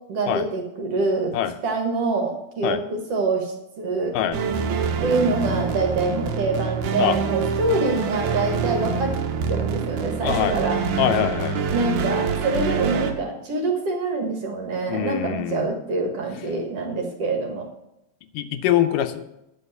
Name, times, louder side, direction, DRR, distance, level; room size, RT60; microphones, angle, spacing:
voice 1, 0.1-1.3 1.6-4.2 5.0-9.1 9.5-10.8 11.7-17.7, right 3 dB, 55° right, 3 dB, 2.2 m, -25 dB
sound 1, 4.3-13.1, right 5 dB, 70° right, 2.3 m, -25 dB
voice 2, 10.2-10.6 11.0-11.6 14.9-15.7 18.3-19.3, left 11 dB, 85° left, 9 dB, 2.3 m, -23 dB
9.7 x 6.2 x 7.2 m, 0.87 s
omnidirectional pair, 3.7 m